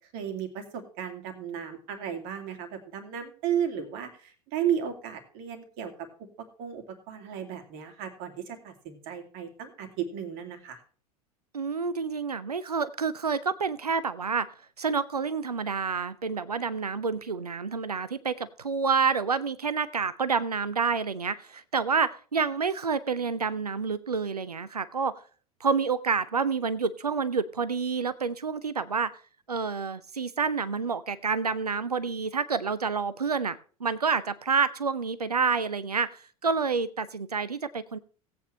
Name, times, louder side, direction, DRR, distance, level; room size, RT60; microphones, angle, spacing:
voice 1, 0.1-6.1 6.4-10.8, right 9 dB, 50° right, 6 dB, 2.5 m, -34 dB
voice 2, 11.5-14.5 14.8-25.2 25.6-29.1 29.5-38.0, right 5 dB, 85° right, 15 dB, 0.6 m, -28 dB
17.0 x 8.6 x 3.3 m, 0.41 s
figure-of-eight pair, 80°, 19 cm